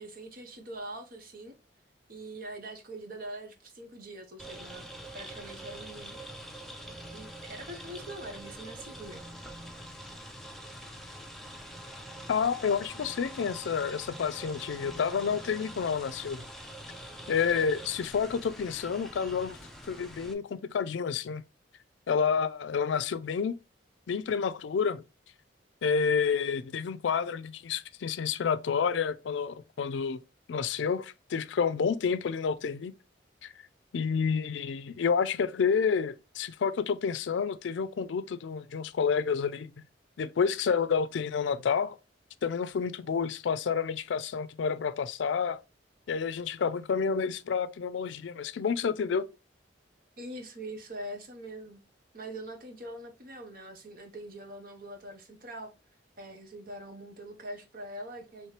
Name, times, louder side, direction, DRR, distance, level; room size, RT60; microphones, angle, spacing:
voice 1, 0.0-1.5 2.1-4.9 5.1-6.2 7.1-9.2 50.2-51.8 52.1-55.7 56.2-58.5, right 1 dB, 50° right, 1.0 m, -43 dB
sound 1, 4.4-20.3, right 1 dB, ahead, 0.6 m, -45 dB
voice 2, 12.3-16.4 17.3-19.6 19.9-21.4 22.1-23.6 24.1-25.0 25.8-30.2 30.5-32.9 33.4-33.5 33.9-39.7 40.2-42.0 42.4-45.6 46.1-49.3, left 6 dB, 80° left, 0.4 m, -29 dB
4.4 x 3.1 x 3.2 m
head